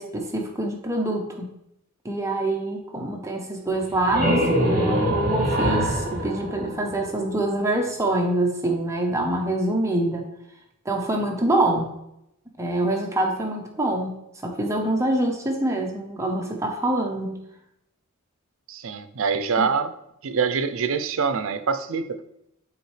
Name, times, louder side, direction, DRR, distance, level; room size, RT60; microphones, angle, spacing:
voice 1, 0.0-1.5 2.0-10.3 10.8-11.9 12.6-17.4 19.6-19.7, right 1 dB, 15° right, 1 dB, 0.8 m, -25 dB
sound 1, 3.7-7.4, equal, 45° right, 2.0 m, -24 dB
voice 2, 18.7-19.9 20.2-22.2, right 5 dB, 65° right, 10 dB, 0.5 m, -25 dB
8.3 x 4.1 x 3.2 m, 0.81 s
head